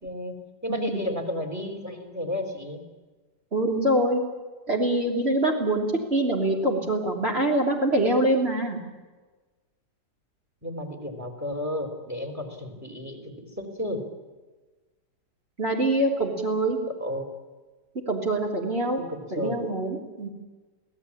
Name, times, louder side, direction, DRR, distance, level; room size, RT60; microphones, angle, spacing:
voice 1, 0.0-2.8 10.6-14.0 16.9-17.3 19.0-19.6, left 1 dB, 10° right, 5 dB, 3.7 m, -33 dB
voice 2, 0.7-1.0 3.5-4.2 4.7-8.8 15.6-16.8 18.1-19.0 19.3-20.3, right 1 dB, 35° right, 0 dB, 3.4 m, -24 dB
25.5 x 17.5 x 8.6 m, 1.3 s
omnidirectional pair, 1.8 m